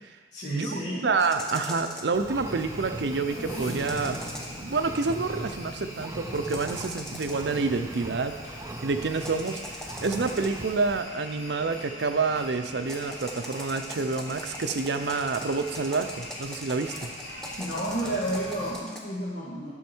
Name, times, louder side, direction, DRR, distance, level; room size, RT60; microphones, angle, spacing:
voice 1, 0.3-1.1 17.6-19.7, right 1 dB, 65° left, -8 dB, 1.8 m, -31 dB
voice 2, 1.0-4.2 4.6-8.3 8.8-9.6 10.0-17.1, right 4 dB, 65° right, 8 dB, 0.6 m, -28 dB
sound 1, 1.2-2.2 3.7-4.7 6.3-7.6 9.1-10.7 12.8-19.0, equal, 5° left, 0.9 m, -41 dB
Engine, 2.1-11.0, right 2 dB, 15° right, 0.4 m, -40 dB
sound 2, 2.4-18.7, left 1 dB, 90° left, 1.6 m, -42 dB
11.0 x 6.3 x 4.5 m, 1.5 s
head